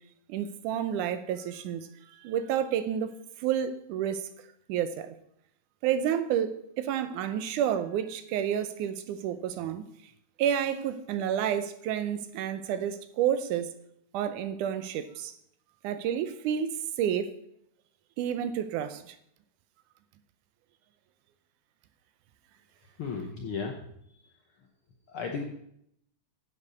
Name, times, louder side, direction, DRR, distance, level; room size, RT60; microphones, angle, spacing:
voice 1, 0.3-3.1 3.4-4.3 4.7-5.1 5.8-9.8 10.4-13.7 14.1-15.3 15.8-17.3 18.2-19.2, right 9 dB, 85° right, 11 dB, 2.3 m, -30 dB
voice 2, 23.0-23.7 24.1-24.2 25.1-25.4, left 5 dB, 70° left, 2 dB, 1.3 m, -34 dB
7.8 x 7.8 x 6.2 m, 0.73 s
omnidirectional pair, 3.5 m